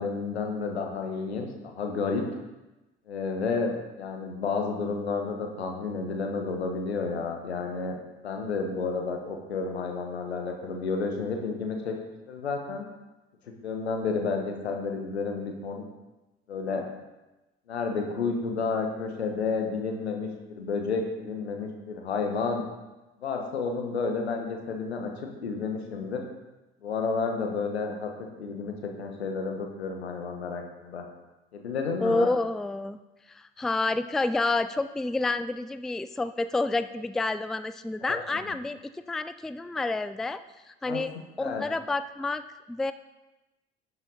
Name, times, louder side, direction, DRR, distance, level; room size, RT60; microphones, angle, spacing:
voice 1, 0.0-2.2 3.1-8.0 8.2-11.9 12.3-12.8 13.6-15.8 16.5-16.8 17.7-22.6 23.2-26.2 26.8-31.0 31.5-32.3 38.1-38.5 40.8-41.0 41.4-41.6, left 4 dB, 80° left, 3 dB, 1.3 m, -31 dB
voice 2, 32.0-33.0 33.3-40.4 40.7-42.9, left 3 dB, ahead, 12 dB, 0.4 m, -29 dB
11.5 x 7.8 x 4.0 m, 1.1 s
figure-of-eight pair, 55°, 31 cm